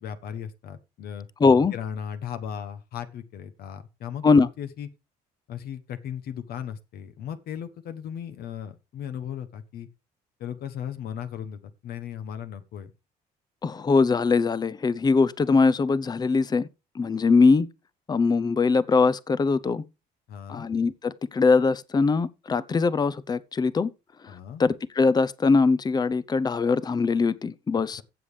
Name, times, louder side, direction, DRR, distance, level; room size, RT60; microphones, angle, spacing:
voice 1, 0.0-1.3 1.7-4.9 5.5-9.9 10.4-12.9 20.3-20.7 24.3-24.6, left 9 dB, 65° left, 1.2 m, -36 dB
voice 2, 1.4-1.7 4.2-4.5 13.6-16.7 16.9-17.7 18.1-19.8 20.5-23.9 24.6-28.0, left 4 dB, 25° left, 0.7 m, -21 dB
15.0 x 7.4 x 3.3 m
cardioid pair, 110°, 17 cm